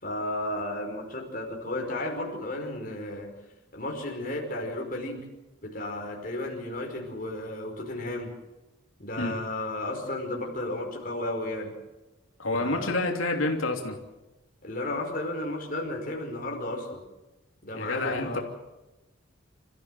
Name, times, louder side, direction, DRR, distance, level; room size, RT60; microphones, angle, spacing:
voice 1, 0.0-3.3 3.7-5.3 5.6-8.3 9.0-11.8 12.6-13.0 14.6-17.1 17.6-18.4, left 1 dB, 45° left, 0 dB, 5.2 m, -33 dB
voice 2, 12.4-14.0 17.7-18.4, left 2 dB, 85° left, 3 dB, 3.2 m, -28 dB
28.0 x 15.0 x 7.8 m, 1.0 s
head